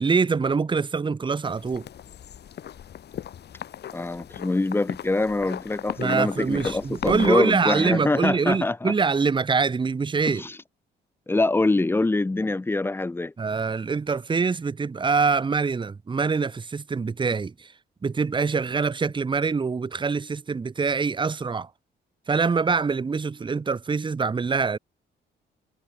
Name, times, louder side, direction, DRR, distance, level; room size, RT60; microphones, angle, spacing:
voice 1, 0.0-1.9 6.0-10.4 13.4-17.7 18.0-21.7 22.3-24.8, right 5 dB, 25° right, 0.8 m, -24 dB
sound 1, 1.5-7.3, left 10 dB, 55° left, 1.2 m, -38 dB
voice 2, 3.9-8.9 10.4-10.5 11.3-13.3, left 2 dB, 10° left, 0.6 m, -24 dB
cardioid pair, 90°, 20 cm